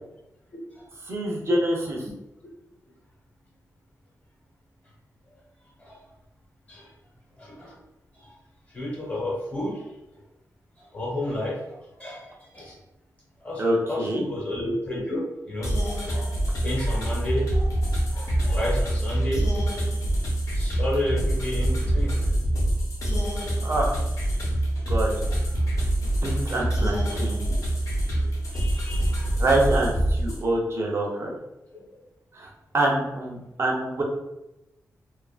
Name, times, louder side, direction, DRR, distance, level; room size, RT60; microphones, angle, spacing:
voice 1, 1.1-2.0 13.6-14.3 23.6-23.9 24.9-25.1 26.0-27.4 29.4-31.3 32.3-34.0, right 1 dB, 45° right, -1 dB, 0.6 m, -26 dB
voice 2, 7.4-7.8 8.1-8.3 8.7-10.2 10.8-12.8 13.4-19.5 20.5-22.1 25.3-25.7 27.3-27.6 28.1-28.2 28.5-29.3 31.7-31.8, left 1 dB, 25° left, -5 dB, 1.1 m, -32 dB
sound 1, 15.6-30.4, right 1 dB, 65° left, 0.8 m, -25 dB
2.5 x 2.4 x 2.4 m, 0.91 s
wide cardioid pair, 110°, 6 cm